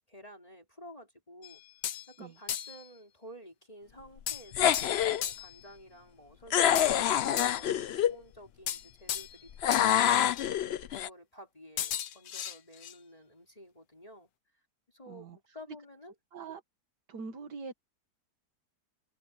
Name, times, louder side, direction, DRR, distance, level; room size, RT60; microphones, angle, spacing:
voice 1, 0.1-1.6 2.1-4.8 5.2-10.1 10.8-14.3 14.9-16.1, equal, 20° left, 4.9 m, -52 dB
sound 1, 1.4-2.1 2.5-2.9 4.3-5.6 6.8-7.8 8.7-9.4 9.7-9.9 10.3-10.5 11.8-12.9, left 10 dB, 90° left, 1.6 m, -36 dB
sound 2, 4.5-5.2 6.5-8.1 9.6-11.1, left 10 dB, 70° left, 0.6 m, -26 dB
voice 2, 15.1-15.4 16.3-16.6 17.1-17.7, right 5 dB, 80° right, 2.1 m, -42 dB
omnidirectional pair, 1.8 m